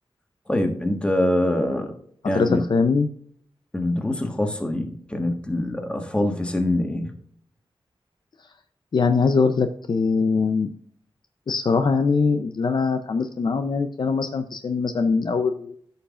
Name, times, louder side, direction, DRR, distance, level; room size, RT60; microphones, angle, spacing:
voice 1, 0.5-2.0 2.2-2.7 3.7-7.1, left 1 dB, 10° left, 4 dB, 1.4 m, -24 dB
voice 2, 2.2-3.1 8.9-10.7 11.5-15.8, left 4 dB, 50° left, 8 dB, 0.6 m, -22 dB
14.0 x 5.5 x 2.5 m, 0.63 s
wide cardioid pair, 130°, 9 cm